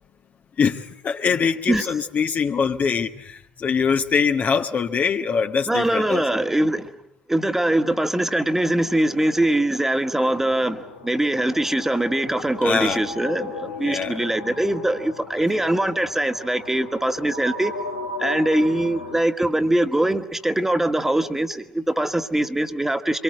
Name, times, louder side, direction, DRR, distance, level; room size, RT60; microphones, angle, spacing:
voice 1, 0.6-6.4 12.6-13.0 13.8-14.2, left 6 dB, 35° left, 6 dB, 1.4 m, -23 dB
voice 2, 5.7-6.9 7.3-17.7 18.2-23.2, right 1 dB, 5° right, 8 dB, 1.8 m, -22 dB
sound 1, 10.5-19.2, left 3 dB, 90° left, 2.4 m, -36 dB
25.5 x 24.0 x 7.8 m, 0.80 s
hypercardioid pair, 70°, 5 cm